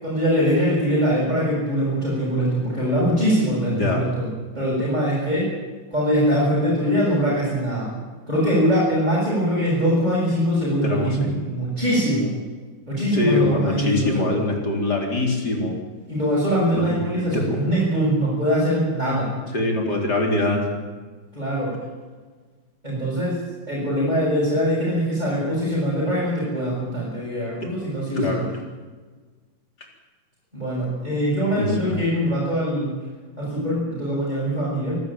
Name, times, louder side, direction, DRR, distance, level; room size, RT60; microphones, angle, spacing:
voice 1, 0.0-4.3 4.5-5.5 5.9-7.9 8.3-12.3 12.9-14.5 16.1-19.3 21.3-21.7 22.8-23.4 23.7-28.4 30.5-32.9 33.4-35.0, equal, 20° right, -8 dB, 7.6 m, -22 dB
voice 2, 3.7-4.0 10.8-11.4 13.1-15.8 16.7-17.4 19.5-20.6 27.6-27.7 28.1-28.5 31.6-32.0, left 2 dB, 55° left, 1 dB, 4.6 m, -23 dB
25.0 x 14.5 x 9.0 m, 1.4 s
omnidirectional pair, 2.1 m